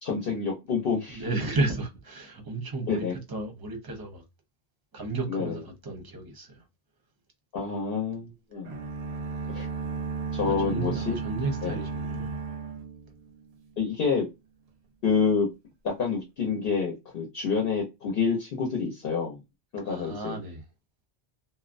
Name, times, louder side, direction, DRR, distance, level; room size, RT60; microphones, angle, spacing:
voice 1, 0.0-1.2 2.9-3.1 5.3-5.5 7.5-8.7 9.5-9.7 10.3-11.2 11.6-11.8 13.8-14.3 15.0-15.5 15.8-19.4 19.7-20.4, left 5 dB, 65° left, 0.9 m, -28 dB
voice 2, 1.1-4.2 4.9-6.6 9.3-9.6 10.3-12.4 19.8-20.6, right 2 dB, 25° right, 0.7 m, -33 dB
sound 1, 8.6-13.6, right 4 dB, 75° right, 0.8 m, -34 dB
2.5 x 2.1 x 2.4 m
omnidirectional pair, 1.1 m